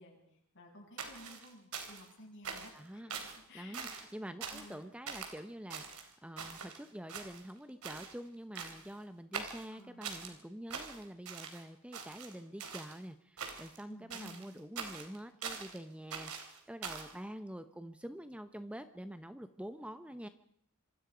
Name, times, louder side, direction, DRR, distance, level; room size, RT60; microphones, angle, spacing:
voice 1, 0.0-3.2 3.5-4.0 4.3-4.9 9.7-10.0 13.9-14.6, left 1 dB, 55° left, 0 dB, 7.5 m, -55 dB
sound 1, 1.0-2.1 2.4-2.8 3.1-3.4 3.7-4.1 4.4-4.7 5.1-5.3 5.7-6.8 7.1-7.6 7.8-8.1 8.5-8.9 9.3-10.3 10.7-11.6 11.9-13.0 13.4-13.8 14.1-15.8 16.1-17.1, right 6 dB, 80° right, 3.9 m, -43 dB
voice 2, 2.7-3.1 3.5-20.3, equal, 5° right, 10 dB, 0.9 m, -47 dB
27.0 x 23.0 x 5.1 m, 0.68 s
head